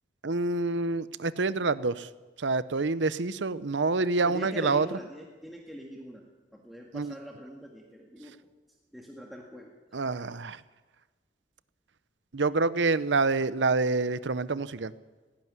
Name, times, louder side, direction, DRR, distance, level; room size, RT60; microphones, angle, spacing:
voice 1, 0.2-2.1 2.4-4.9 6.9-7.1 9.9-10.6 12.3-14.9, right 3 dB, 85° right, 15 dB, 0.8 m, -27 dB
voice 2, 4.2-6.2 6.5-8.4 8.9-9.7, equal, ahead, -2 dB, 1.9 m, -42 dB
17.0 x 17.0 x 9.7 m, 1.3 s
head